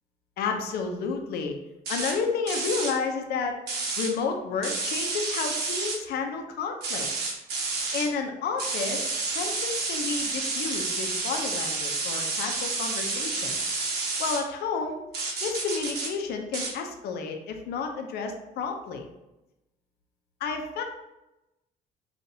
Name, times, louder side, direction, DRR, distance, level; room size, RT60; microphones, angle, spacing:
voice 1, 0.4-1.6 1.9-3.6 4.0-7.1 7.9-13.6 14.2-15.0 15.4-19.0 20.4-20.8, left 5 dB, 70° left, 4 dB, 0.6 m, -31 dB
sound 1, 1.9-2.1 2.5-2.9 3.7-4.1 4.6-6.0 6.8-8.1 8.6-14.4 15.1-16.1 16.5-16.7, right 3 dB, 70° right, 1.0 m, -30 dB
5.6 x 2.5 x 2.7 m, 0.95 s
cardioid pair, 110°, 17 cm